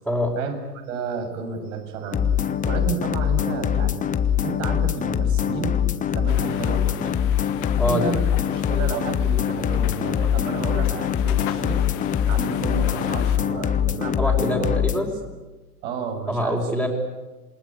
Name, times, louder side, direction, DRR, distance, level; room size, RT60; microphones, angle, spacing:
voice 1, 0.9-4.1 4.4-5.8 6.1-7.2 7.9-11.9 12.3-14.7 15.0-15.2 15.8-16.7, right 5 dB, 55° right, 5 dB, 7.3 m, -31 dB
sound 1, 2.1-15.0, left 9 dB, 15° left, 1.3 m, -23 dB
sound 2, 6.3-13.4, left 15 dB, 40° left, 1.7 m, -36 dB
voice 2, 14.2-15.1 16.3-16.9, equal, 5° right, -5 dB, 4.9 m, -24 dB
27.5 x 20.5 x 10.0 m, 1.2 s
hypercardioid pair, 110°, 46 cm